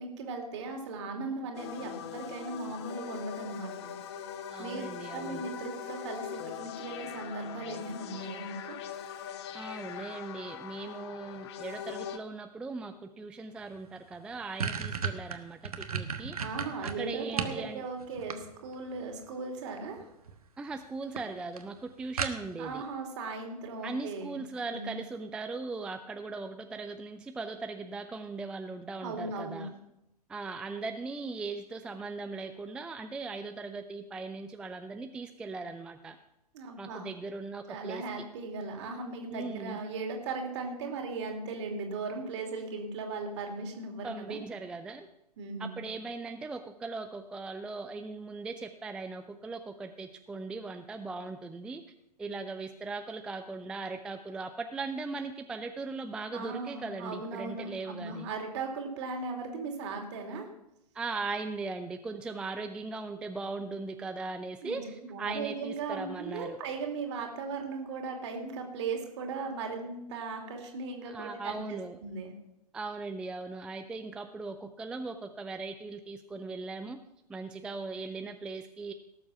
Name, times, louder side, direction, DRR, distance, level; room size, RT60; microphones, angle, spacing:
voice 1, 0.0-3.9 4.6-4.8 5.1-8.8 16.4-20.0 22.6-24.4 24.7-25.0 29.0-29.7 36.5-37.1 37.7-44.4 45.4-45.8 56.3-60.5 64.6-72.3, right 3 dB, 45° right, 3 dB, 2.8 m, -38 dB
sound 1, 1.5-12.2, left 9 dB, 40° left, 1.0 m, -41 dB
voice 2, 4.5-5.5 9.5-16.4 16.8-17.9 20.6-22.8 23.8-29.7 30.3-36.2 36.8-38.0 39.3-39.8 44.0-45.1 45.6-51.8 52.2-58.3 60.9-66.6 71.1-72.0 72.7-77.0 77.3-78.9, right 3 dB, 5° right, 8 dB, 0.3 m, -39 dB
sound 2, 13.7-13.8 14.1-17.6 18.0-18.9 20.0-20.4 20.7-20.8 21.2-21.3 21.6-21.7 22.2-22.7, right 6 dB, 65° right, 1.3 m, -34 dB
18.0 x 7.2 x 5.8 m, 0.86 s
figure-of-eight pair, 110°, 20 cm